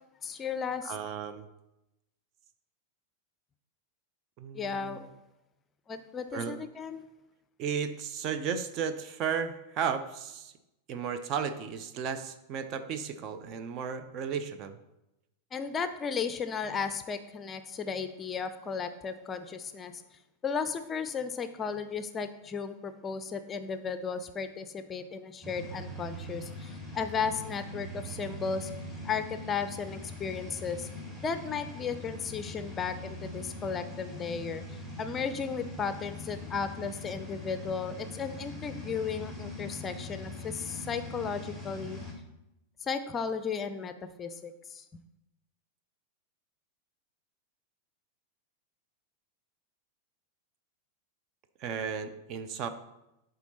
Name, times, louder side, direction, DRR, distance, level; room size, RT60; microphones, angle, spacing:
voice 1, 0.2-0.9 4.5-5.1 5.9-7.0 15.5-20.0 20.4-28.7 29.0-30.9 31.2-42.0 42.8-43.9 44.2-44.8, left 6 dB, 20° left, 10 dB, 0.5 m, -35 dB
voice 2, 0.8-1.5 4.4-5.1 6.3-6.5 7.6-10.5 10.9-14.8 51.6-52.7, right 7 dB, 35° right, 9 dB, 0.6 m, -34 dB
sound 1, 25.4-42.1, left 1 dB, 10° right, 2.2 m, -42 dB
11.5 x 3.9 x 4.2 m, 0.92 s
figure-of-eight pair, 90°, 0 cm